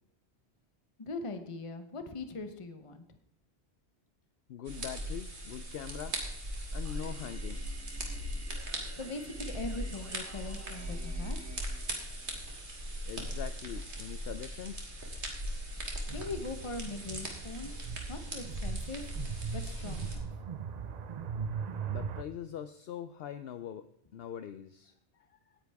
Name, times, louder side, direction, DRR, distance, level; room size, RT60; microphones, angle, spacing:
voice 1, 1.0-3.2 8.9-11.5 16.1-17.7 18.1-19.1 19.5-20.3, left 3 dB, 30° left, 8 dB, 1.0 m, -41 dB
voice 2, 4.5-6.2 6.7-7.6 13.1-14.9 21.9-23.9 24.1-24.9 25.3-25.6, left 9 dB, 65° left, 11 dB, 0.8 m, -42 dB
sound 1, 4.7-20.2, equal, 85° right, 2.6 m, -39 dB
Singing, 6.8-12.8, right 2 dB, 15° right, 0.8 m, -53 dB
sound 2, 16.1-22.2, right 7 dB, 50° right, 0.6 m, -40 dB
18.0 x 9.8 x 3.5 m, 0.75 s
omnidirectional pair, 1.1 m